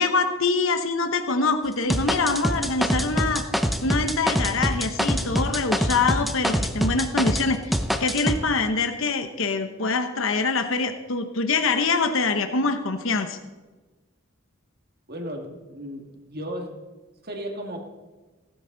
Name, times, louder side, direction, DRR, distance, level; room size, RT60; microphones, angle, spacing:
voice 1, 0.0-3.4 3.8-7.7 8.0-13.4, left 4 dB, 65° left, 7 dB, 1.0 m, -24 dB
sound 1, 1.9-7.5 7.7-8.4, equal, ahead, 0.8 m, -24 dB
voice 2, 15.1-16.8 17.2-17.8, equal, 45° right, 3 dB, 2.2 m, -35 dB
18.5 x 13.0 x 4.0 m, 1.2 s
head